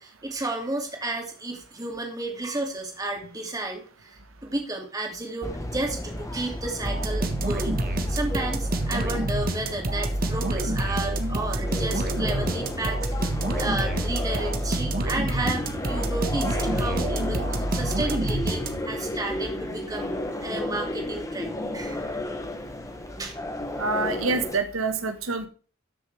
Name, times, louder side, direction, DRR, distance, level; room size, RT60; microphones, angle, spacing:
voice 1, 0.0-7.8 8.1-13.2 13.6-22.2 23.2-23.3, right 2 dB, 20° right, 2 dB, 2.5 m, -32 dB
sound 1, 5.4-24.6, left 1 dB, 15° left, 1.2 m, -34 dB
sound 2, 6.8-19.1, right 1 dB, 45° right, 1.4 m, -27 dB
voice 2, 23.8-25.5, right 3 dB, 85° right, 8 dB, 1.3 m, -26 dB
13.5 x 7.0 x 3.4 m, 0.39 s
head